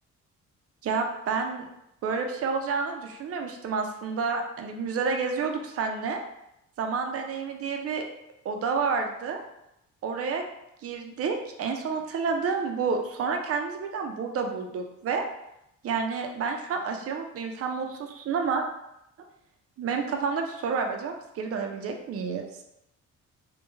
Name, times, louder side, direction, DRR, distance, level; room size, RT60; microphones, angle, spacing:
voice 1, 0.8-1.7 2.0-6.2 6.8-8.0 8.4-9.4 10.0-10.4 10.8-15.2 15.8-18.6 19.8-22.5, right 5 dB, 50° right, 4 dB, 0.5 m, -29 dB
3.1 x 2.2 x 3.4 m, 0.83 s
cardioid pair, 90°, 30 cm